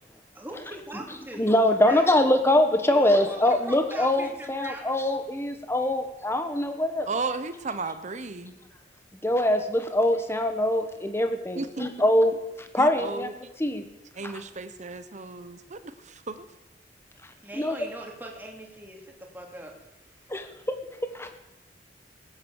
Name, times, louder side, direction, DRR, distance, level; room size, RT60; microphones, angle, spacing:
voice 1, 0.3-1.5 1.9-2.0 2.9-5.0 5.8-5.9 8.3-8.7 17.4-19.0 19.3-19.7 20.2-20.3, right 1 dB, 10° right, 0 dB, 2.8 m, -41 dB
voice 2, 1.4-7.1 9.2-12.4 12.7-13.3 13.6-13.8 17.6-17.7 20.3-20.8 21.0-21.4, left 1 dB, 15° left, 7 dB, 1.3 m, -23 dB
voice 3, 7.1-8.5 11.5-11.9 12.8-13.5 14.1-16.4, right 3 dB, 40° right, 11 dB, 1.0 m, -34 dB
18.5 x 9.6 x 7.3 m, 0.95 s
head